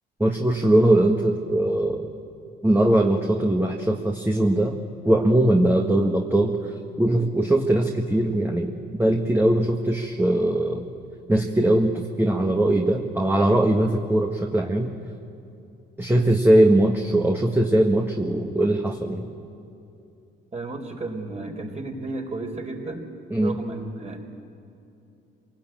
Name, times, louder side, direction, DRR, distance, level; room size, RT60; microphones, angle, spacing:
voice 1, 0.2-2.1 2.6-4.8 5.0-6.7 7.0-8.7 9.0-10.9 11.3-14.9 16.0-19.3 23.3-23.6, right 1 dB, 10° right, 1 dB, 1.7 m, -20 dB
voice 2, 20.5-23.0 23.4-24.2, right 2 dB, 35° right, 3 dB, 4.1 m, -33 dB
26.5 x 19.0 x 9.1 m, 2.7 s
cardioid pair, 90°, 20 cm